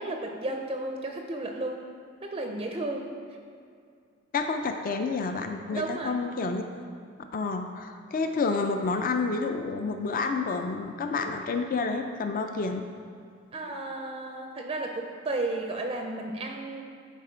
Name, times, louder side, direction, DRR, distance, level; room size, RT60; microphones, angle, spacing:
voice 1, 0.0-1.8 2.2-3.1 5.7-6.2 13.5-16.8, right 2 dB, 25° right, 3 dB, 0.5 m, -33 dB
voice 2, 4.3-6.6 7.3-12.8, left 4 dB, 40° left, 5 dB, 0.4 m, -29 dB
10.5 x 4.2 x 4.4 m, 2.3 s
head